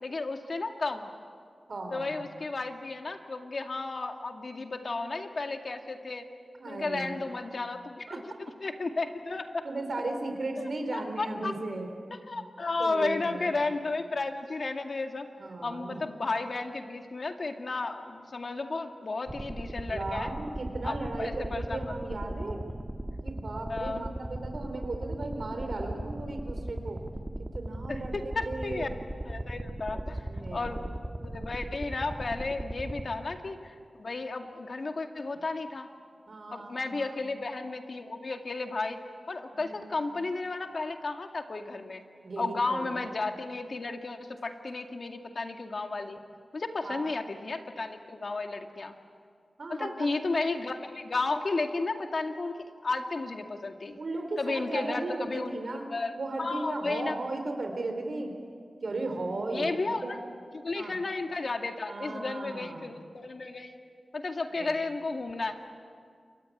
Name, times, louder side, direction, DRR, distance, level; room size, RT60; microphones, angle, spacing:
voice 1, 0.0-1.1 1.9-6.3 6.7-8.1 8.6-9.7 10.6-11.5 12.1-15.3 15.6-20.3 20.8-21.8 23.7-24.1 27.9-28.9 29.3-30.9 31.2-35.9 36.5-39.0 39.3-42.0 42.4-46.2 46.5-49.0 49.7-54.0 54.4-55.6 55.9-56.1 56.4-57.1 59.5-60.2 60.5-63.8 64.1-65.5, left 3 dB, 55° left, 4 dB, 2.2 m, -33 dB
voice 2, 1.7-2.2 6.6-7.3 8.1-8.4 9.6-11.9 12.3-12.4 12.8-13.6 15.4-16.0 19.8-22.6 23.2-27.0 27.4-28.9 29.9-30.0 30.3-30.7 36.3-37.2 39.5-40.0 42.2-43.1 46.8-47.1 49.6-50.1 54.0-55.9 56.2-58.3 58.8-60.2 60.7-61.0 61.9-62.9 64.5-64.7, right 2 dB, 65° right, 5 dB, 3.9 m, -36 dB
sound 1, 19.3-33.7, right 1 dB, 20° right, 1.8 m, -38 dB
28.5 x 23.5 x 8.7 m, 2.1 s
wide cardioid pair, 75°, 0 cm